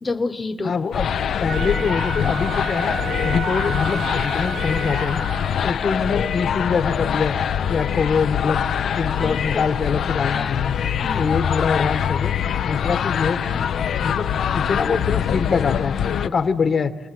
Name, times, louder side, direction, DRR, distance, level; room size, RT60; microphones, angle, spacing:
voice 1, 0.0-0.7 9.2-9.6 10.3-11.3, left 3 dB, 25° left, 6 dB, 1.2 m, -29 dB
voice 2, 0.6-5.2 5.6-7.3 7.7-8.6 8.9-10.7 11.1-12.3 12.6-13.6 14.0-15.9 16.2-16.9, left 5 dB, 45° left, 9 dB, 1.5 m, -24 dB
sound 1, 0.9-16.3, left 8 dB, 65° left, 0.7 m, -24 dB
Wind instrument woodwind instrument, 1.4-5.7, right 6 dB, 75° right, 3.1 m, -32 dB
27.5 x 20.0 x 9.1 m, 1.4 s
cardioid pair, 90°, 0 cm